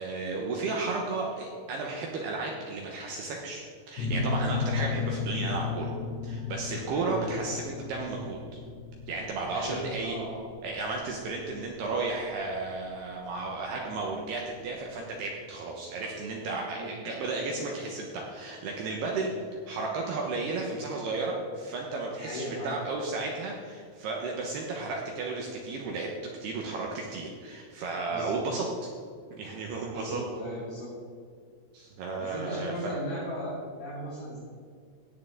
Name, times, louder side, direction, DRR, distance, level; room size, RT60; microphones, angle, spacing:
voice 1, 0.0-3.6 3.9-6.0 6.2-8.6 9.1-10.2 10.6-19.3 19.7-26.1 26.4-28.7 29.3-30.2 31.7-32.9, right 3 dB, 75° right, 0 dB, 2.5 m, -33 dB
sound 1, 4.0-13.4, left 4 dB, 60° left, 2.5 m, -34 dB
voice 2, 6.8-7.3 9.5-10.4 16.6-16.9 22.1-22.8 28.0-28.4 29.9-30.9 32.2-34.4, equal, 40° left, -10 dB, 4.3 m, -37 dB
16.5 x 8.5 x 3.8 m, 2.1 s
omnidirectional pair, 5.9 m